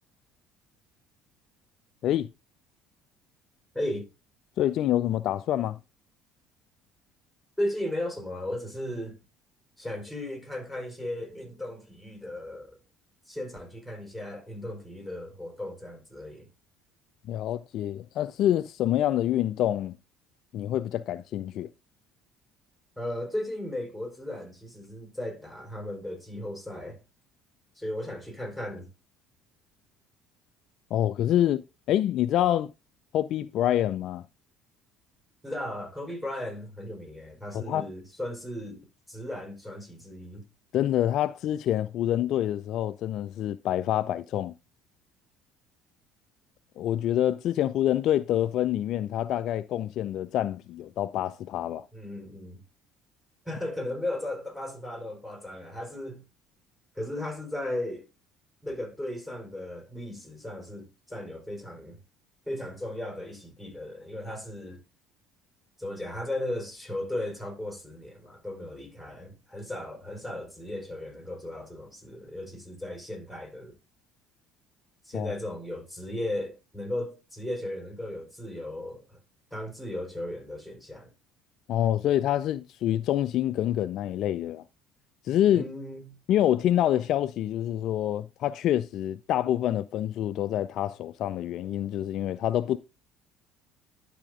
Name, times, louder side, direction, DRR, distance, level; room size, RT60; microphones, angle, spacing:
voice 1, 3.7-4.1 7.6-9.2 9.8-12.8 13.3-16.5 23.0-27.0 27.7-28.9 35.4-38.8 39.1-40.4 51.9-52.6 53.4-56.2 56.9-58.0 58.6-62.0 62.4-64.8 65.8-73.7 75.0-79.2 79.5-81.1 85.5-86.2, left 1 dB, 5° right, 4.9 m, -36 dB
voice 2, 4.6-5.8 17.3-19.9 20.5-21.7 30.9-32.7 33.1-34.2 37.5-37.8 40.7-44.5 46.8-51.9 75.1-75.3 81.7-84.6 85.3-85.6 86.3-92.8, left 12 dB, 60° left, 0.3 m, -26 dB
11.5 x 4.3 x 3.7 m
hypercardioid pair, 60°, 0 cm